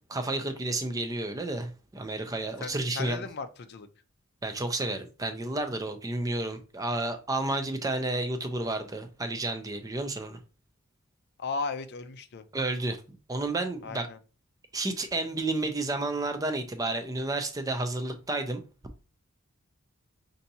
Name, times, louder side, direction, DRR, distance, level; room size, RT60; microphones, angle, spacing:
voice 1, 0.1-3.2 4.4-10.4 12.5-13.0 13.3-14.1 14.7-18.6, right 2 dB, 15° right, 0.4 m, -31 dB
voice 2, 2.6-3.9 11.4-12.4 13.8-14.2, left 4 dB, 50° left, 0.4 m, -36 dB
5.6 x 2.6 x 2.7 m
head